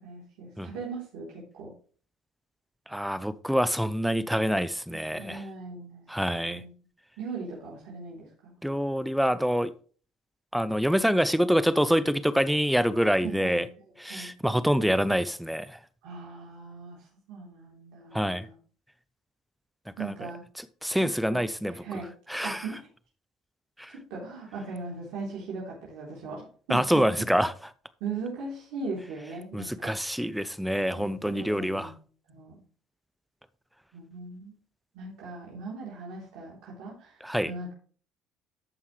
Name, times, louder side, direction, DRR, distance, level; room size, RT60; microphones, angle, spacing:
voice 1, 0.0-1.7 4.9-6.7 7.2-8.5 13.2-13.7 14.1-14.3 16.0-18.6 20.0-20.4 20.9-21.4 21.7-22.1 22.4-22.9 23.9-27.0 28.0-30.0 31.0-31.1 31.4-32.0 32.3-32.5 33.9-34.5 34.9-37.2 37.4-37.7, right 4 dB, 75° right, 3.6 m, -39 dB
voice 2, 2.9-5.4 6.1-6.6 8.6-9.7 10.5-13.6 14.0-15.8 18.1-18.5 20.0-20.1 20.8-21.8 22.3-22.6 23.8-23.9 26.7-27.5 29.5-31.9 37.2-37.5, equal, ahead, 0.7 m, -26 dB
13.5 x 5.6 x 3.3 m
supercardioid pair, 75°, 0 cm